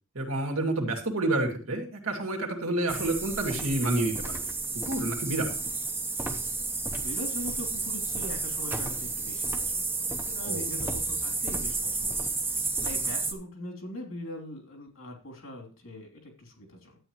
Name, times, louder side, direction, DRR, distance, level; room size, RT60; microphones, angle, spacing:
voice 1, 0.1-4.4 4.9-5.6 10.4-10.7, right 2 dB, 85° right, 2 dB, 2.3 m, -29 dB
sound 1, 2.9-13.3, right 3 dB, 10° right, 0.9 m, -31 dB
voice 2, 7.0-17.0, left 1 dB, 70° left, 1 dB, 3.1 m, -42 dB
12.0 x 8.8 x 3.1 m, 0.35 s
head